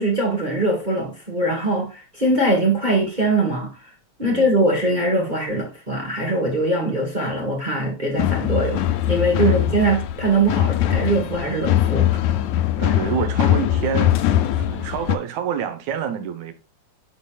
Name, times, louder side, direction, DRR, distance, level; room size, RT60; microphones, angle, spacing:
voice 1, 0.0-3.7 4.2-8.8 9.1-12.2, right 2 dB, 25° right, 1.0 m, -22 dB
voice 2, 4.2-4.5 9.4-9.7 12.8-16.5, right 8 dB, 80° right, 2.4 m, -28 dB
sound 1, 8.2-15.2, left 12 dB, 85° left, 2.0 m, -21 dB
9.4 x 4.7 x 2.4 m
omnidirectional pair, 3.3 m